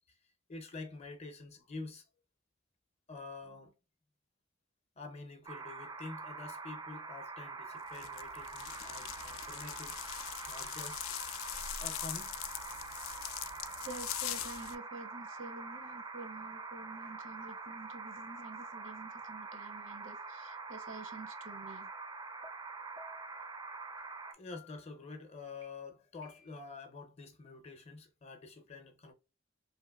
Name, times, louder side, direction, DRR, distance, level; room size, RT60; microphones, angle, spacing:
voice 1, 0.5-2.1 3.1-3.7 5.0-10.0 10.5-11.0 11.8-12.4 13.8-13.9 24.3-29.1, left 3 dB, 35° left, 0.5 m, -47 dB
sound 1, 5.4-24.3, right 4 dB, 20° right, 0.4 m, -45 dB
sound 2, 7.9-14.8, left 12 dB, 85° left, 0.3 m, -42 dB
voice 2, 13.8-21.9, right 3 dB, 70° right, 0.6 m, -49 dB
sound 3, 22.4-22.5 23.0-23.3 24.0-24.1 24.5-25.0 25.6-25.7 26.2-26.8, left 3 dB, 90° right, 1.4 m, -56 dB
2.9 x 2.5 x 2.3 m
head